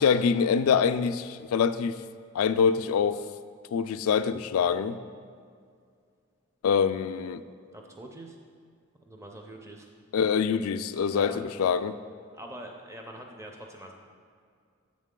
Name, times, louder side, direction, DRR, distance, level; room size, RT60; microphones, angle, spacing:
voice 1, 0.0-2.0 2.3-3.2 3.7-5.0 6.6-7.4 10.1-12.0, left 6 dB, 80° left, 12 dB, 0.3 m, -25 dB
voice 2, 7.7-8.4 9.1-9.9 11.1-11.4 12.3-13.9, right 1 dB, 15° right, 2 dB, 0.5 m, -44 dB
8.1 x 6.3 x 3.7 m, 2.2 s
head